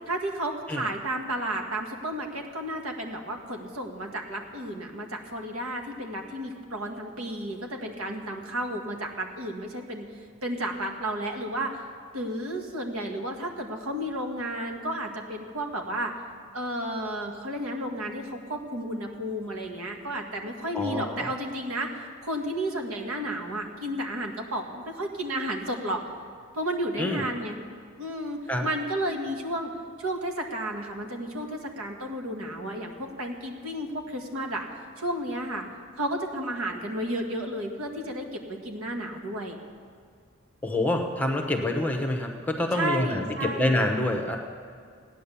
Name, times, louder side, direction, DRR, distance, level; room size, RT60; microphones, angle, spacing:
voice 1, 0.1-10.1 10.4-11.7 12.1-16.1 16.5-21.9 22.2-26.0 26.5-27.6 28.0-29.7 30.0-34.7 35.0-35.7 36.0-39.6 42.7-43.8, right 1 dB, 80° right, 2 dB, 1.8 m, -32 dB
voice 2, 20.7-21.3 27.0-27.2 28.5-28.6 40.6-44.4, left 1 dB, 5° left, 3 dB, 1.0 m, -27 dB
16.5 x 10.0 x 7.0 m, 2.1 s
head